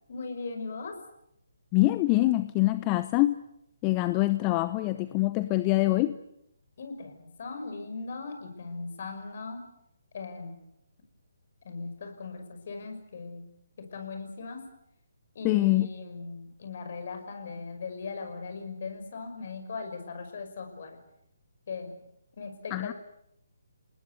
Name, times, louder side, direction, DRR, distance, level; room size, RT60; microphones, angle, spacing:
voice 1, 0.1-1.0 6.8-9.7 10.1-10.7 11.6-13.5 13.8-14.7 15.3-21.0 21.7-22.0 22.4-22.9, left 4 dB, 50° left, 7 dB, 5.9 m, -39 dB
voice 2, 1.7-3.4 3.8-6.2 15.4-15.9 22.7-22.9, left 18 dB, 25° left, 12 dB, 0.9 m, -24 dB
29.0 x 19.5 x 8.2 m, 0.78 s
figure-of-eight pair, 140°, 0 cm